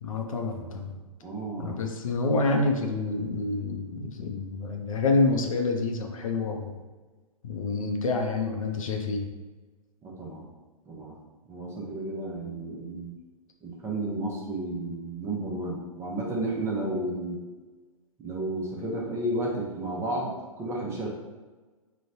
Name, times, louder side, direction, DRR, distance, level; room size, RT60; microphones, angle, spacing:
voice 1, 0.0-1.0 1.6-6.8 7.4-9.3, left 3 dB, 65° left, 3 dB, 0.5 m, -28 dB
voice 2, 1.2-1.8 10.0-10.4 10.9-11.1 11.5-13.1 13.6-17.4 18.2-21.1, right 2 dB, 15° right, -3 dB, 0.5 m, -32 dB
3.9 x 2.1 x 2.6 m, 1.3 s
figure-of-eight pair, 115°, 19 cm